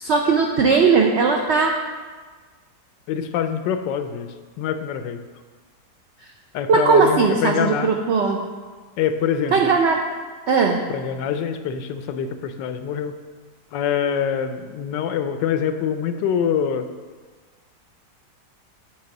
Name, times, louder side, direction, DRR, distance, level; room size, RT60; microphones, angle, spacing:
voice 1, 0.0-1.7 6.7-8.5 9.5-10.0 10.5-10.9, right 4 dB, 85° right, 1 dB, 0.5 m, -18 dB
voice 2, 3.1-4.3 4.6-5.2 6.5-7.9 9.0-9.7 10.9-13.1 13.7-16.9, left 8 dB, 90° left, 8 dB, 1.3 m, -25 dB
8.0 x 3.5 x 6.4 m, 1.5 s
omnidirectional pair, 1.9 m